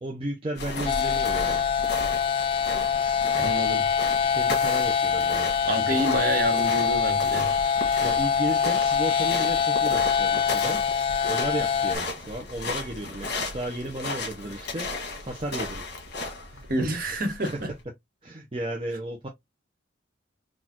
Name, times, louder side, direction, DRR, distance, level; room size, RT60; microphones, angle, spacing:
voice 1, 0.0-1.6 4.3-5.5 8.0-10.8 11.3-15.8 16.5-16.6 18.2-19.3, right 1 dB, 30° right, 0.6 m, -34 dB
sound 1, 0.6-17.8, left 2 dB, 60° left, 1.4 m, -35 dB
sound 2, 0.9-12.0, left 7 dB, 30° left, 0.4 m, -24 dB
voice 2, 3.3-3.9 5.7-7.5 16.7-17.7, right 1 dB, 50° right, 1.2 m, -28 dB
4.2 x 2.4 x 2.8 m
head